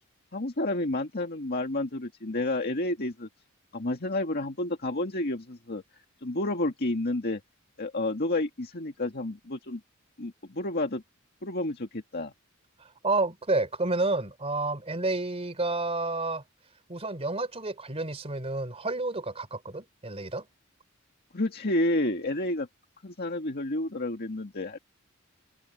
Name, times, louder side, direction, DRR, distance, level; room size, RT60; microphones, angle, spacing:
voice 1, 0.3-3.3 3.7-5.8 6.2-7.4 7.8-9.8 10.2-11.0 11.4-12.3 21.3-22.7 23.0-24.8, left 2 dB, 50° left, 1.8 m, -30 dB
voice 2, 13.0-16.4 16.9-20.4, right 2 dB, 30° right, 3.7 m, -30 dB
head